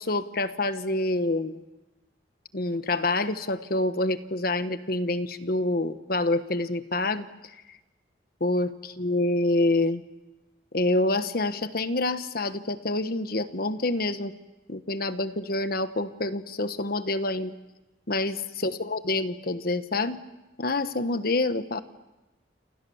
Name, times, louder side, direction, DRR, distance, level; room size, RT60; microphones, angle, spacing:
voice 1, 0.0-1.6 2.5-7.3 8.4-10.0 10.7-14.3 14.7-17.5 18.1-20.2 20.6-21.8, left 2 dB, 55° left, 11 dB, 1.3 m, -27 dB
28.5 x 28.0 x 7.2 m, 1.1 s
head